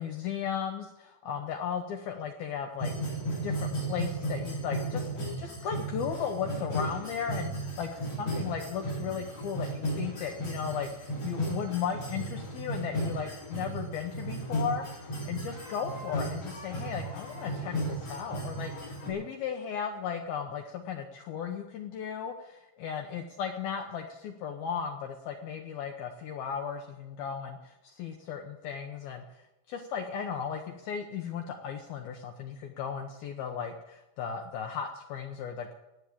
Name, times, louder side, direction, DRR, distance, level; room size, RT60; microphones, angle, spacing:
voice 1, 0.0-29.2 29.7-35.7, left 7 dB, 80° left, 4 dB, 2.2 m, -36 dB
sound 1, 2.8-19.1, right 1 dB, 35° left, 7.5 m, -35 dB
15.0 x 9.4 x 8.5 m, 0.95 s
omnidirectional pair, 5.7 m